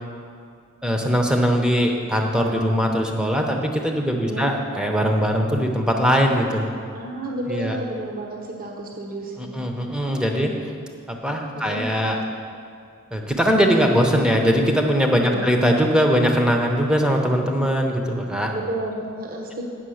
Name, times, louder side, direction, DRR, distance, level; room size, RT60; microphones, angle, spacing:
voice 1, 0.8-6.7 7.5-7.8 9.4-10.5 11.1-12.2 13.1-18.5, equal, 5° right, 2 dB, 0.8 m, -21 dB
voice 2, 4.1-4.5 6.9-9.6 11.6-11.9 15.1-15.5 18.5-19.6, right 1 dB, 40° right, -1 dB, 1.0 m, -31 dB
8.8 x 6.2 x 6.4 m, 2.3 s
head